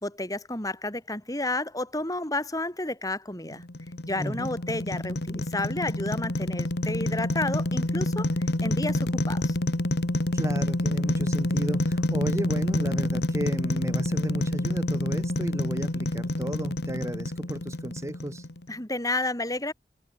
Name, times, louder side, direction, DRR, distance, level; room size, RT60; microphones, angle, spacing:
voice 1, 0.0-3.6 4.1-9.6 18.7-19.7, left 2 dB, 20° left, 4.0 m, -31 dB
sound 1, 3.5-18.7, left 1 dB, 65° left, 1.7 m, -28 dB
voice 2, 4.2-4.5 10.3-18.5, equal, 15° right, 1.9 m, -33 dB
head